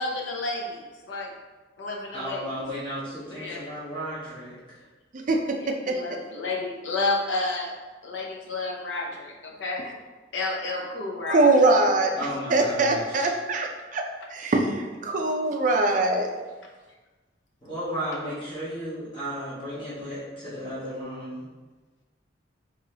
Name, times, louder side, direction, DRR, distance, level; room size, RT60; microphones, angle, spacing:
voice 1, 0.0-1.3 1.8-2.7 3.3-3.6 5.5-7.7 8.0-9.9 10.3-11.6, left 2 dB, 80° left, 0 dB, 0.6 m, -31 dB
voice 2, 2.1-4.8 12.1-13.3 17.6-21.4, equal, 25° left, -11 dB, 1.1 m, -34 dB
voice 3, 5.1-6.2 11.3-12.1 12.5-14.0 14.3-16.3, right 2 dB, 40° right, 3 dB, 0.4 m, -23 dB
4.0 x 3.0 x 2.7 m, 1.3 s
head